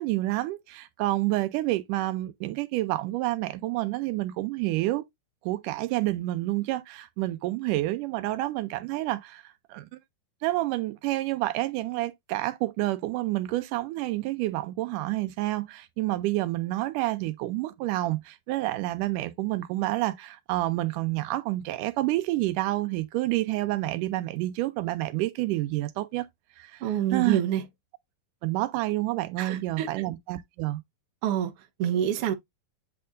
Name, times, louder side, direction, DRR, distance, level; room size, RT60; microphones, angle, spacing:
voice 1, 0.0-5.0 5.4-9.4 9.7-9.9 10.4-26.3 26.6-26.8 27.1-27.4 28.4-30.8, right 17 dB, 85° right, 2.2 m, -29 dB
voice 2, 26.8-27.7 29.4-29.9 31.2-31.5 31.8-32.3, right 10 dB, 60° right, 1.7 m, -26 dB
8.4 x 4.4 x 2.5 m
omnidirectional pair, 3.7 m